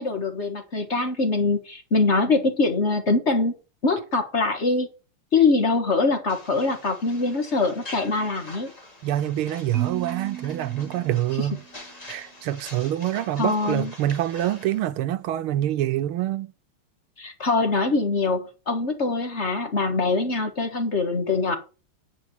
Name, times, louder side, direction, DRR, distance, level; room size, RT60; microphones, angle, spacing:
voice 1, 0.0-3.5 3.8-4.9 5.3-8.7 11.4-11.5 13.4-13.9 17.2-21.6, left 3 dB, 35° left, 1.6 m, -23 dB
sound 1, 6.3-14.8, left 1 dB, 20° left, 2.4 m, -45 dB
voice 2, 9.0-11.6 12.1-16.5, right 12 dB, 85° right, 1.7 m, -26 dB
Marimba xylophone, 9.7-11.9, right 11 dB, 45° right, 1.4 m, -37 dB
9.6 x 5.2 x 7.4 m
omnidirectional pair, 2.3 m